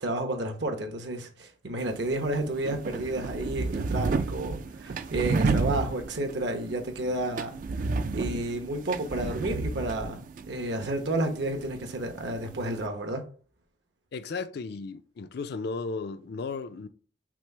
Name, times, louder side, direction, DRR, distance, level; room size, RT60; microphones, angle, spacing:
voice 1, 0.0-7.6 8.1-13.2, right 1 dB, 70° right, 0.9 m, -31 dB
sound 1, 1.8-12.9, right 4 dB, 45° right, 0.3 m, -32 dB
voice 2, 14.1-16.9, left 4 dB, 60° left, 0.4 m, -35 dB
6.0 x 2.0 x 4.5 m
head